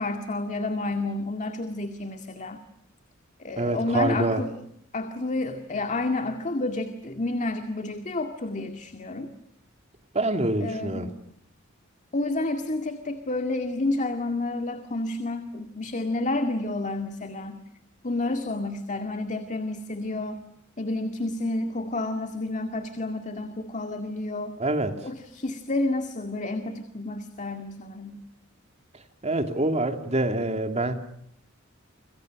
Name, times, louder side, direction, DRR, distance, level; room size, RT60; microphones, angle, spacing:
voice 1, 0.0-2.6 3.4-4.6 4.9-9.3 10.6-11.1 12.1-17.6 18.0-20.4 20.8-24.5 25.0-28.2, left 2 dB, 35° left, 7 dB, 2.1 m, -30 dB
voice 2, 3.6-4.4 10.1-11.1 24.6-25.0 29.2-30.9, right 2 dB, 30° right, 6 dB, 2.8 m, -25 dB
30.0 x 27.0 x 6.4 m, 0.72 s
head